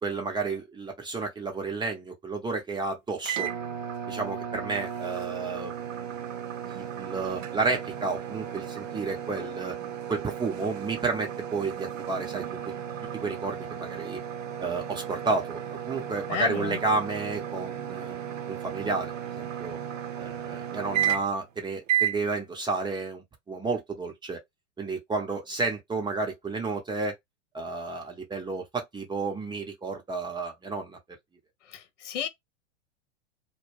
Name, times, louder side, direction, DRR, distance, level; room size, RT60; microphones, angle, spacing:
voice 1, 0.0-3.5 4.1-5.8 6.6-9.7 10.1-12.4 13.1-14.2 14.6-18.2 18.5-19.8 20.2-24.4 24.8-27.1 27.5-31.0, right 3 dB, 10° right, 0.7 m, -31 dB
sound 1, 3.2-21.5 21.9-22.2, right 10 dB, 85° right, 0.6 m, -34 dB
voice 2, 16.3-16.8 31.7-32.3, left 7 dB, 70° left, 0.8 m, -32 dB
2.2 x 2.1 x 3.1 m
hypercardioid pair, 105°, 38 cm